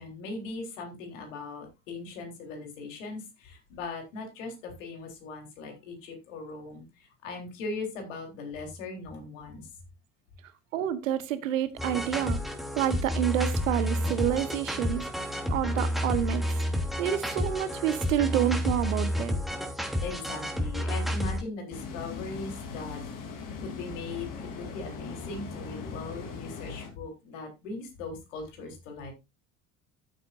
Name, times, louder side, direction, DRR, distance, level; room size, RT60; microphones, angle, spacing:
voice 1, 0.0-9.7 20.0-23.3 23.6-29.1, left 3 dB, 75° left, 3.8 m, -39 dB
voice 2, 10.7-12.4 12.7-16.6 17.0-19.4, right 11 dB, 80° right, 1.2 m, -28 dB
sound 1, 11.8-21.4, left 1 dB, ahead, 3.0 m, -30 dB
sound 2, 21.7-26.9, left 5 dB, 55° left, 3.5 m, -39 dB
13.5 x 8.1 x 2.6 m
hypercardioid pair, 65°, 38 cm